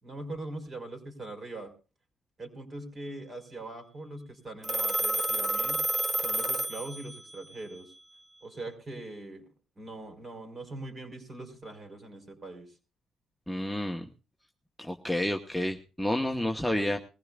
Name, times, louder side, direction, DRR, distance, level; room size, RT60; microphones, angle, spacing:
voice 1, 0.0-1.7 2.4-5.8 6.2-7.9 8.4-9.4 9.8-12.7 16.7-16.9, right 2 dB, 40° right, 6 dB, 4.8 m, -41 dB
Telephone, 4.6-7.4, right 2 dB, 15° right, 0.8 m, -30 dB
voice 2, 13.5-14.1 14.8-17.0, left 1 dB, ahead, 3 dB, 1.1 m, -30 dB
21.5 x 15.5 x 2.4 m, 0.33 s
cardioid pair, 90°, 0 cm